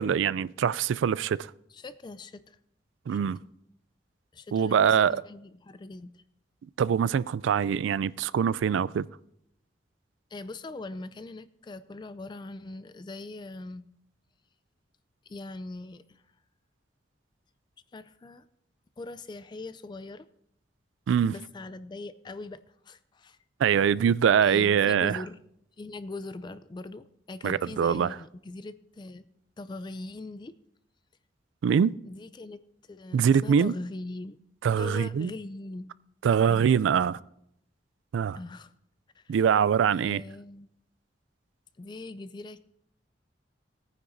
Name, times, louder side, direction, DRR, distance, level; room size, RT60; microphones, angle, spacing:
voice 1, 0.0-1.5 3.1-3.4 4.5-5.2 6.8-9.1 21.1-21.3 23.6-25.2 27.4-28.1 31.6-31.9 33.1-33.7 34.6-35.3 36.2-37.2 38.1-38.4 39.3-40.2, right 7 dB, 90° right, 0.3 m, -23 dB
voice 2, 1.7-2.6 3.1-3.3 4.3-6.2 10.3-13.9 15.3-16.2 17.9-18.5 19.0-20.3 21.3-23.4 24.4-25.4 25.8-29.2 29.6-30.6 32.1-32.6 32.9-34.4 34.8-35.9 36.5-36.7 38.4-38.7 39.1-39.3 40.0-40.7 41.8-42.6, left 2 dB, 25° left, 0.3 m, -41 dB
18.0 x 9.7 x 2.6 m
head